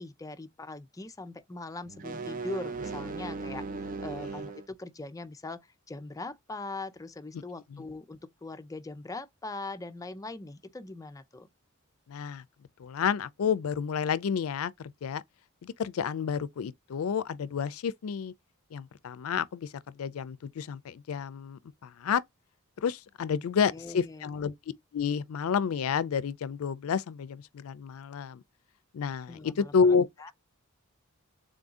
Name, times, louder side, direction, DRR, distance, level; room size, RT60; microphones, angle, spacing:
voice 1, 0.0-11.5 23.7-24.3 29.3-30.3, left 3 dB, 15° left, 0.4 m, -41 dB
sound 1, 1.9-4.7, right 3 dB, 40° right, 0.4 m, -37 dB
voice 2, 12.1-12.4 12.8-15.2 15.6-18.3 18.7-22.2 22.8-24.5 24.9-28.4 28.9-30.1, left 6 dB, 90° left, 0.4 m, -30 dB
3.8 x 2.6 x 3.6 m
head